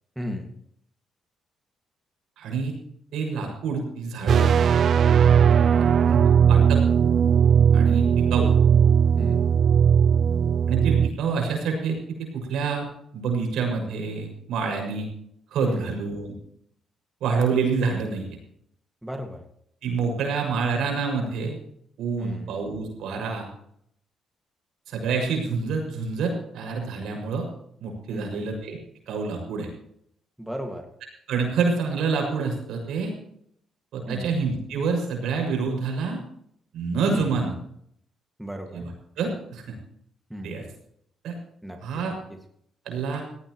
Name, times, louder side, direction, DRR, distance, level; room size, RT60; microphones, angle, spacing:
voice 1, 0.2-0.5 5.4-5.9 9.2-9.4 15.7-16.0 19.0-19.4 22.2-22.5 28.1-28.5 30.4-30.9 34.1-34.4 37.1-37.4 38.4-38.9 40.3-40.6 41.6-41.8, equal, 5° right, 3 dB, 2.1 m, -35 dB
voice 2, 2.4-2.7 3.1-4.5 6.1-6.2 6.5-6.8 7.7-8.5 10.7-12.9 13.1-15.1 15.5-16.3 17.2-18.4 19.8-21.6 22.0-23.5 24.9-27.5 27.8-28.8 29.1-29.7 31.3-33.1 33.9-36.2 36.7-37.5 38.7-38.9 39.2-39.7 40.4-40.6 41.2-41.4 41.8-42.1 42.8-43.2, right 5 dB, 80° right, 2 dB, 6.6 m, -27 dB
sound 1, 4.3-11.1, right 7 dB, 60° right, 0.6 m, -18 dB
17.5 x 16.5 x 3.2 m, 0.69 s
cardioid pair, 90°, 0 cm